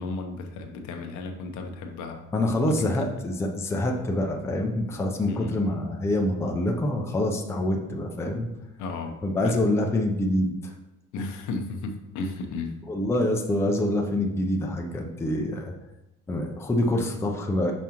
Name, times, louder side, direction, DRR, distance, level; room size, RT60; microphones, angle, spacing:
voice 1, 0.0-2.2 2.7-3.1 5.3-5.5 8.8-9.6 11.1-12.8, left 3 dB, 80° left, 4 dB, 0.9 m, -34 dB
voice 2, 2.3-8.5 9.2-10.7 12.9-15.7 16.3-17.7, left 1 dB, 10° left, 1 dB, 0.5 m, -26 dB
6.1 x 5.4 x 2.9 m, 0.93 s
cardioid pair, 180°, 29 cm